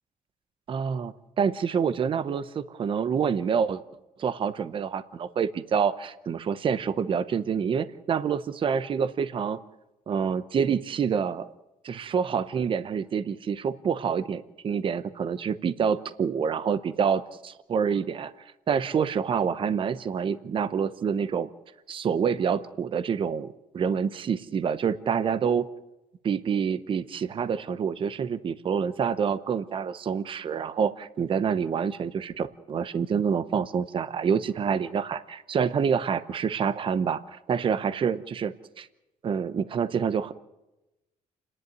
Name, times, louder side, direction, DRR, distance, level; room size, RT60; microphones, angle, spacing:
voice 1, 0.7-3.8 4.2-9.6 10.1-11.5 11.8-18.3 18.7-21.5 21.9-25.7 26.2-38.9 39.2-40.3, right 7 dB, 40° right, 14 dB, 0.8 m, -27 dB
29.5 x 11.0 x 9.6 m, 0.96 s
cardioid pair, 175°, 14 cm